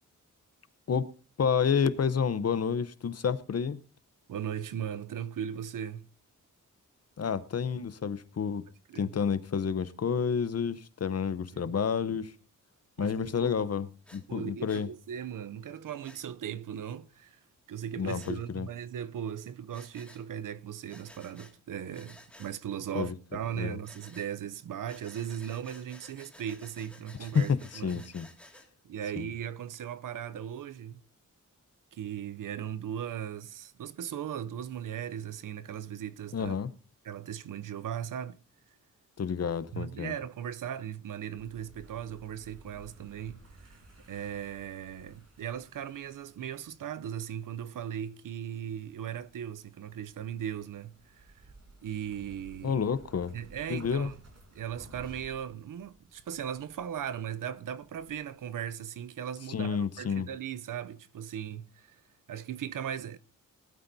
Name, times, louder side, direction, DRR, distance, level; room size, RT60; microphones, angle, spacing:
voice 1, 1.4-3.8 7.2-8.7 8.9-12.3 13.0-14.9 18.0-18.7 22.9-23.1 23.5-23.8 27.3-28.3 29.2-29.3 36.3-36.7 39.2-40.1 52.6-53.3 53.7-54.1 59.5-60.3, left 6 dB, 50° left, 0.8 m, -29 dB
voice 2, 4.3-6.1 8.9-9.1 11.5-11.7 13.0-13.6 14.3-17.4 17.7-28.1 28.8-31.0 31.9-36.6 37.0-38.4 39.7-43.7 44.1-51.3 51.8-52.8 53.3-54.2 54.5-62.0 62.3-63.2, right 9 dB, 75° right, 0.7 m, -38 dB
Breathing, 14.1-14.2 14.7-14.9 16.0-16.2 18.1-18.4 19.7-20.2 20.9-21.5 21.9-22.5 23.8-24.3 24.9-28.7, left 1 dB, 5° left, 2.1 m, -54 dB
sound 1, 41.4-58.3, right 2 dB, 50° right, 5.5 m, -56 dB
19.0 x 13.0 x 2.7 m
cardioid pair, 85°, 32 cm